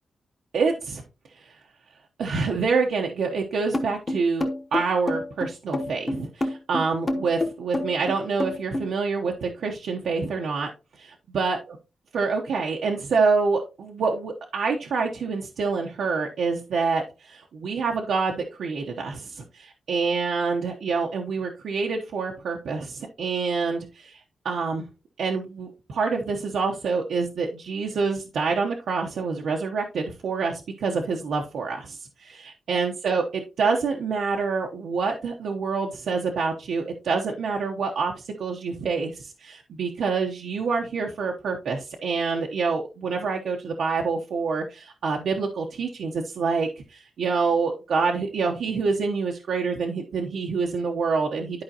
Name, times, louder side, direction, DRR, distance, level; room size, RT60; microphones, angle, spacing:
voice 1, 0.5-1.0 1.4-1.6 2.2-10.7 11.0-11.6 12.1-24.9 25.2-51.6, right 4 dB, 75° right, 1 dB, 0.9 m, -27 dB
sound 1, 3.7-8.9, left 1 dB, 20° left, 0.9 m, -27 dB
11.5 x 5.0 x 2.8 m, 0.30 s
wide cardioid pair, 180°, 0 cm